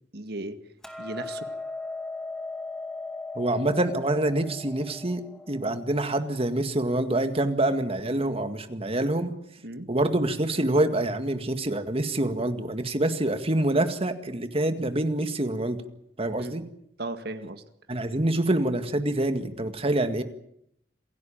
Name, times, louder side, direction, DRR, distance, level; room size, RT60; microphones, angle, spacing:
voice 1, 0.1-0.6 1.0-1.5 8.3-8.4 9.6-9.9 16.4-16.5 17.0-17.6, right 2 dB, 60° right, 9 dB, 2.0 m, -36 dB
Hammer, 0.8-7.1, left 3 dB, 5° left, 2.3 m, -38 dB
voice 2, 3.4-9.4 9.9-15.8 16.2-16.6 17.9-20.2, right 1 dB, 35° right, 8 dB, 2.0 m, -26 dB
27.5 x 16.5 x 8.9 m, 0.74 s
head